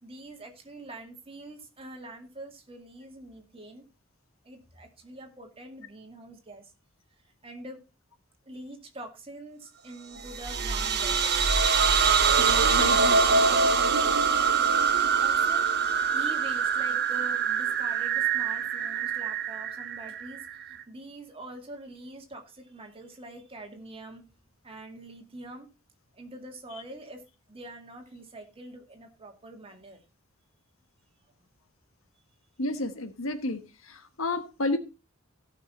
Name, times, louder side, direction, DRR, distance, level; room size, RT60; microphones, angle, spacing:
voice 1, 0.0-3.9 4.4-6.7 7.4-7.8 8.5-11.4 15.0-24.2 24.6-25.7 26.1-27.2 27.5-30.0, right 1 dB, 30° right, 2.1 m, -45 dB
sound 1, 10.2-20.8, right 5 dB, 55° right, 0.9 m, -24 dB
voice 2, 12.4-13.2 32.6-33.6 33.9-34.8, left 2 dB, 80° left, 1.4 m, -31 dB
16.5 x 5.9 x 4.2 m
head